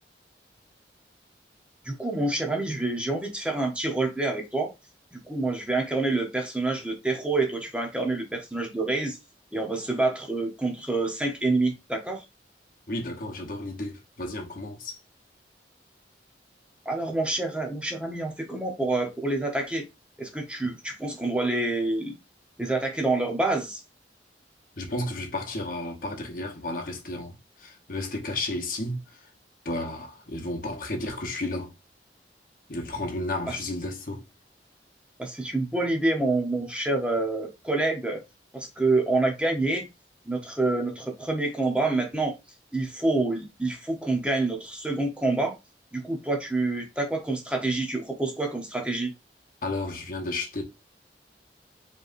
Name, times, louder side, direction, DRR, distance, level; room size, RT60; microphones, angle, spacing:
voice 1, 1.8-4.7 5.1-9.2 9.5-12.2 16.9-19.8 20.2-22.2 22.6-23.8 35.2-38.2 38.5-39.9 40.3-42.4 42.7-45.6 45.9-49.1, right 2 dB, 5° right, 0.7 m, -27 dB
voice 2, 12.9-15.0 24.8-27.3 27.6-29.2 29.6-31.7 32.7-34.3 49.6-50.6, left 2 dB, 50° left, 1.0 m, -32 dB
5.1 x 3.1 x 2.5 m
head